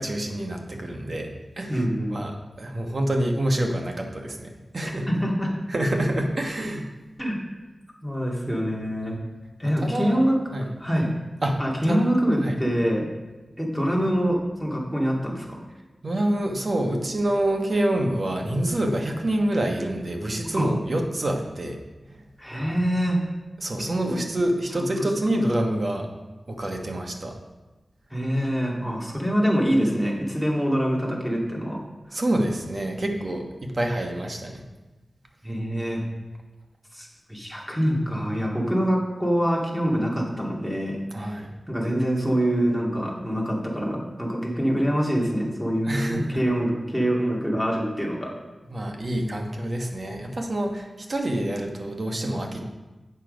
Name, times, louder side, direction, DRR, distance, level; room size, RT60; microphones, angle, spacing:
voice 1, 0.0-5.2 5.7-6.9 9.6-10.2 10.5-10.7 11.4-11.6 11.9-12.0 12.4-12.6 16.0-21.8 22.1-22.2 22.5-22.8 23.6-26.1 26.5-27.4 32.1-34.6 41.1-41.5 45.9-46.4 48.7-52.6, right 1 dB, 50° right, 3 dB, 1.2 m, -27 dB
voice 2, 1.7-2.2 5.1-5.5 7.2-7.4 8.0-9.2 9.6-10.4 10.8-11.1 11.6-13.1 13.6-15.6 20.5-20.7 22.4-23.2 24.0-24.2 24.7-24.9 28.1-31.8 32.1-32.2 35.4-36.0 36.9-41.4 41.7-48.3, equal, ahead, -2 dB, 2.2 m, -25 dB
8.3 x 6.4 x 5.2 m, 1.2 s
wide cardioid pair, 70°, 0 cm